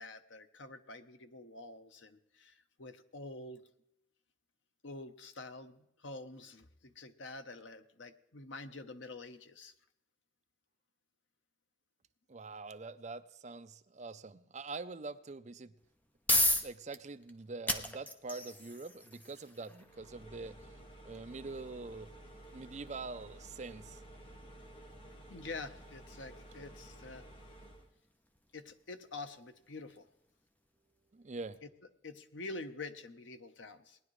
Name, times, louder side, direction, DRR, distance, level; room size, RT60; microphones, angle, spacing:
voice 1, 0.0-3.6 4.8-9.7 25.3-27.3 28.5-30.1 31.6-31.7 32.0-34.0, left 3 dB, 85° left, 9 dB, 0.9 m, -47 dB
voice 2, 12.3-15.7 16.5-20.6 21.0-22.1 22.5-24.0 31.1-31.6, right 3 dB, 40° right, 11 dB, 0.5 m, -44 dB
sound 1, 15.8-30.7, left 1 dB, 10° left, 0.7 m, -39 dB
sound 2, 19.8-27.9, right 1 dB, 30° left, 1.3 m, -53 dB
19.0 x 11.0 x 3.2 m, 0.79 s
head